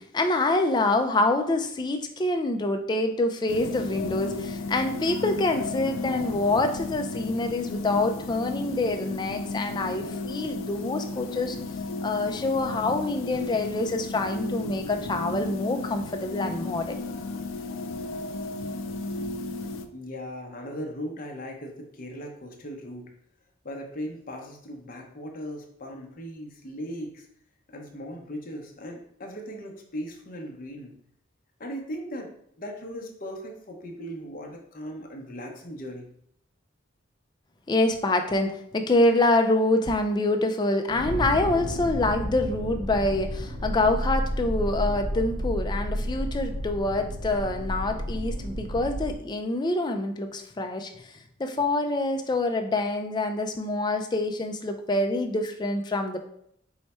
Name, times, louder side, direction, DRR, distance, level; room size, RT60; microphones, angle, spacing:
voice 1, 0.0-11.6 12.0-17.0 37.7-51.1 51.4-56.2, left 2 dB, 20° left, 5 dB, 0.3 m, -26 dB
sound 1, 3.5-19.9, left 3 dB, 90° left, 0.4 m, -34 dB
voice 2, 19.9-23.1 23.6-27.3 27.7-30.9 31.6-32.3 32.6-36.1, equal, 45° left, 2 dB, 0.7 m, -38 dB
sound 2, 40.9-49.2, equal, 65° right, 0.7 m, -31 dB
4.6 x 2.2 x 4.1 m, 0.69 s
head